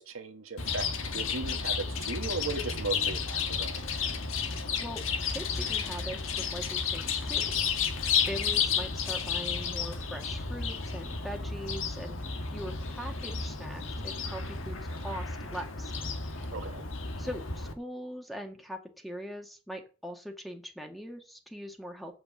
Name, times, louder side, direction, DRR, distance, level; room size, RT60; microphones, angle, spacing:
voice 1, 0.0-3.8 16.5-16.8, right 3 dB, 75° right, 1.5 m, -37 dB
Chirp tweet, 0.6-17.7, left 5 dB, 70° left, 1.6 m, -32 dB
voice 2, 5.3-7.9 8.3-12.2 12.5-15.9 16.3-16.5 17.2-22.2, equal, ahead, 1.7 m, -41 dB
7.9 x 6.1 x 7.6 m
head